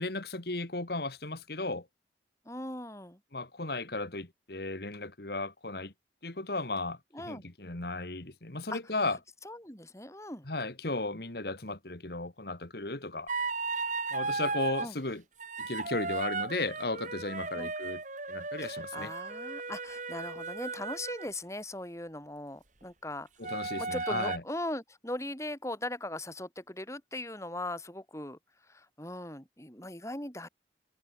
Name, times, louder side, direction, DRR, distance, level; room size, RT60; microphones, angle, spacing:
voice 1, 0.0-1.9 3.3-5.9 6.2-9.2 10.5-13.3 14.1-15.2 15.6-18.0 18.3-19.1 23.4-24.4, left 2 dB, 55° left, 2.1 m, -35 dB
voice 2, 2.5-3.2 7.1-7.4 8.7-8.8 9.4-10.4 14.8-14.9 17.6-17.7 18.6-23.3 23.8-28.4 28.7-30.5, left 1 dB, 15° left, 5.7 m, -39 dB
sound 1, 13.3-14.9 15.4-21.3 23.4-24.4, right 3 dB, 45° right, 4.2 m, -35 dB
head